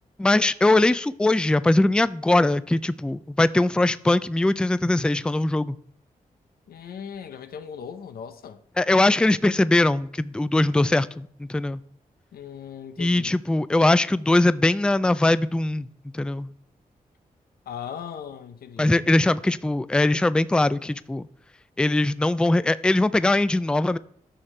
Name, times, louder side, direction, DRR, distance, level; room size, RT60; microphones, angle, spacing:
voice 1, 0.2-5.8 8.8-11.8 13.0-15.9 16.1-16.5 18.8-21.3 21.8-24.0, left 2 dB, 5° left, 0.4 m, -21 dB
voice 2, 6.7-8.6 12.3-13.4 17.7-19.2, left 8 dB, 85° left, 0.7 m, -38 dB
11.0 x 6.4 x 3.3 m
cardioid pair, 55°, 15 cm